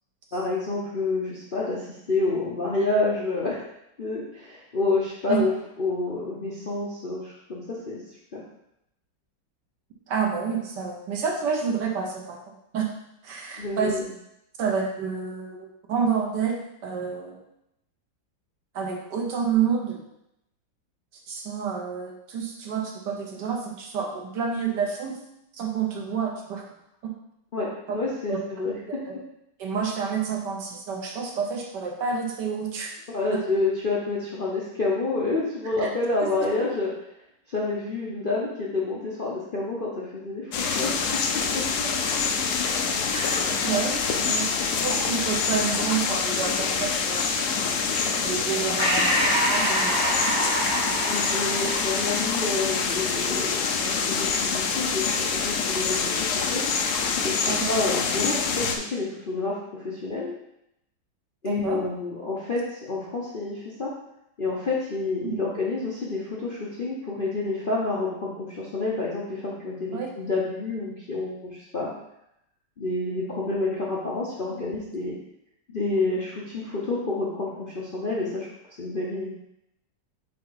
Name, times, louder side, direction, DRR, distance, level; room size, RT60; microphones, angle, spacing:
voice 1, 0.3-3.6 4.0-5.5 5.8-8.0 8.3-8.4 13.6-14.0 27.5-28.7 33.1-36.9 37.5-41.0 41.5-41.9 47.8-47.9 51.1-56.6 57.2-60.3 61.4-63.9 64.4-71.9 72.8-75.2 75.7-78.5 78.8-79.3, left 3 dB, 45° left, -5 dB, 0.7 m, -28 dB
voice 2, 10.1-12.9 13.2-14.0 14.6-16.6 16.8-17.4 18.7-20.0 21.3-25.2 25.5-26.7 27.0-27.1 27.9-28.0 28.3-28.4 28.9-29.2 29.6-32.9 33.3-33.4 35.8-35.9 36.2-36.3 40.7-40.8 43.1-47.3 48.2-50.3 57.4-57.7 61.4-61.8 65.2-65.4 69.9-70.1 74.5-74.6, right 6 dB, 65° right, 1 dB, 1.5 m, -29 dB
sound 1, 40.5-58.8, left 5 dB, 65° left, 1.1 m, -26 dB
Breathing, 48.8-53.7, right 1 dB, 5° left, 2.3 m, -27 dB
5.6 x 4.5 x 3.9 m, 0.82 s
omnidirectional pair, 2.1 m